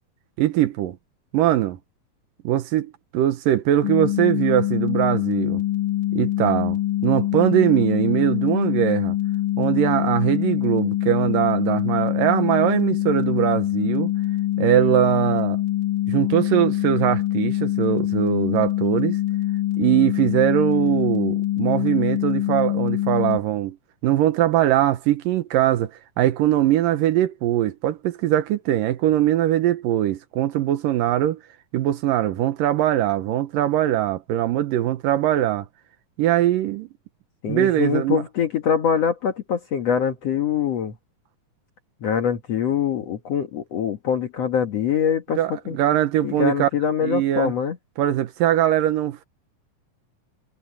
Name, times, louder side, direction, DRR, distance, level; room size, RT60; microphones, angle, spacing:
voice 1, 0.4-1.0 1.3-1.8 2.4-5.6 6.1-9.2 9.6-14.1 14.6-15.6 16.1-19.2 19.8-23.8 24.0-25.9 26.2-31.4 31.7-35.7 36.2-36.9 37.5-38.2 45.4-46.7 47.0-47.5 48.0-49.2, right 13 dB, 85° right, 2.8 m, -21 dB
sound 1, 3.8-23.4, left 14 dB, 35° left, 2.2 m, -24 dB
voice 2, 37.4-40.9 42.0-45.4 45.7-45.8 46.2-47.8, left 7 dB, 55° left, 2.4 m, -23 dB
omnidirectional pair, 3.8 m